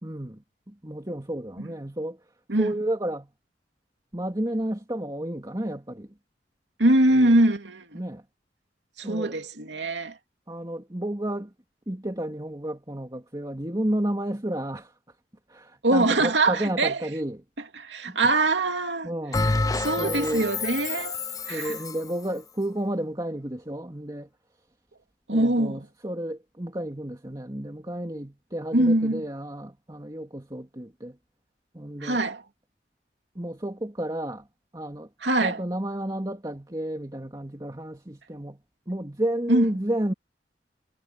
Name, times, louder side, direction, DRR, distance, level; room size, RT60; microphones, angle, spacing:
voice 1, 0.0-2.2 2.5-3.3 4.1-6.1 7.1-7.4 7.9-8.2 9.0-9.4 10.5-11.5 11.9-14.9 15.5-17.4 18.1-18.3 19.0-19.5 20.0-20.5 21.5-24.3 25.3-31.2 31.7-32.2 33.3-34.5 34.7-35.1 35.4-38.6 38.9-40.1, right 1 dB, 20° right, 2.5 m, -32 dB
voice 2, 6.8-8.0 9.0-10.2 15.8-17.0 17.8-19.1 19.8-21.2 21.5-21.7 25.3-25.8 28.7-29.2 32.0-32.4 35.2-35.6 39.5-39.7, right 2 dB, 85° right, 2.6 m, -23 dB
Bell, 19.3-22.1, left 3 dB, 20° left, 0.5 m, -28 dB
head